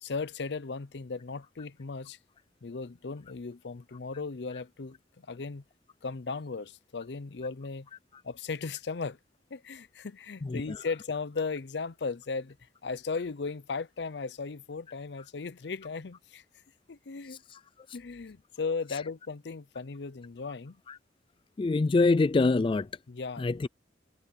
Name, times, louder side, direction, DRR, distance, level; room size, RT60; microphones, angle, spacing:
voice 1, 0.0-2.2 2.6-5.0 5.3-5.6 6.0-7.9 8.2-9.2 9.5-12.6 12.8-16.4 16.9-17.4 17.9-20.8 23.1-23.5, left 4 dB, 70° left, 0.6 m, -36 dB
voice 2, 10.4-10.8 17.5-17.6 20.9-21.0 21.6-22.9 23.4-23.7, left 3 dB, 30° left, 0.3 m, -25 dB
head